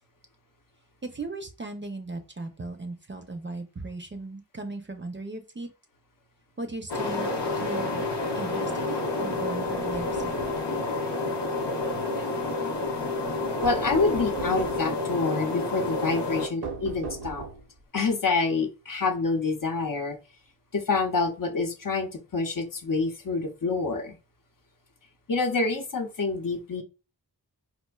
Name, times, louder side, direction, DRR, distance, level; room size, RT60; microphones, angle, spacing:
voice 1, 1.0-5.7 6.6-8.0 8.3-10.3, right 2 dB, 30° right, 0.5 m, -37 dB
sound 1, 6.9-16.5, left 2 dB, 90° left, 0.8 m, -29 dB
sound 2, 9.6-10.6 13.6-15.0 16.6-17.8, right 5 dB, 70° right, 0.6 m, -38 dB
voice 2, 13.6-17.4 17.9-20.2 20.7-24.2 25.3-26.8, left 4 dB, 55° left, 0.6 m, -27 dB
4.3 x 2.5 x 2.2 m
wide cardioid pair, 55°, 41 cm